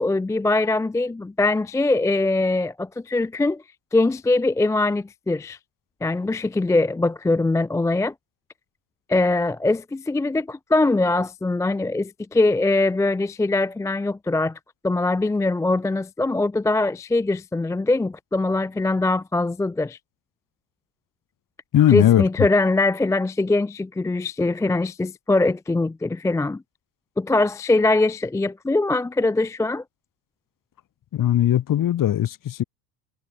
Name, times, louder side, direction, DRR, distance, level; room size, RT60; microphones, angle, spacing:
voice 1, 0.0-3.6 3.9-5.6 6.0-8.1 9.1-14.6 14.8-20.0 21.9-26.6 27.2-29.8, left 2 dB, 5° left, 0.5 m, -22 dB
voice 2, 21.7-22.2 31.1-32.6, left 11 dB, 40° left, 4.3 m, -18 dB
hypercardioid pair, 95°, 48 cm